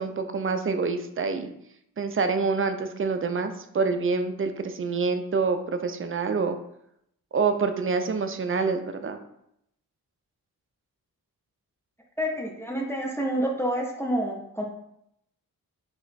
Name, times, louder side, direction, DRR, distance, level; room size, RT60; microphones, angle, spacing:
voice 1, 0.0-1.5 2.0-6.6 7.3-9.2, right 4 dB, 35° right, 8 dB, 0.4 m, -26 dB
voice 2, 12.2-14.6, equal, 5° left, -1 dB, 0.6 m, -28 dB
2.9 x 2.1 x 4.0 m, 0.75 s
cardioid pair, 50°, 37 cm